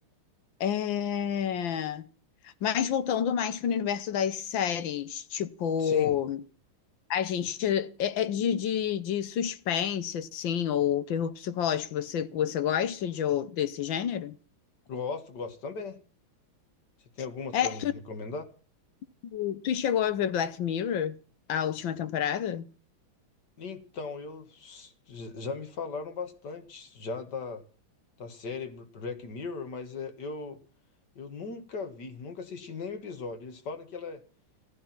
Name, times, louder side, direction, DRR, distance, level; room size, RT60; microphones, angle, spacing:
voice 1, 0.6-2.1 2.4-6.4 7.1-14.4 17.5-17.9 19.3-21.2 21.5-22.7, left 9 dB, 70° left, 1.5 m, -29 dB
voice 2, 5.8-6.2 14.9-16.0 17.2-18.4 23.6-27.6 28.2-30.6 31.2-34.2, left 4 dB, 55° left, 2.0 m, -38 dB
14.5 x 12.5 x 5.8 m
omnidirectional pair, 2.3 m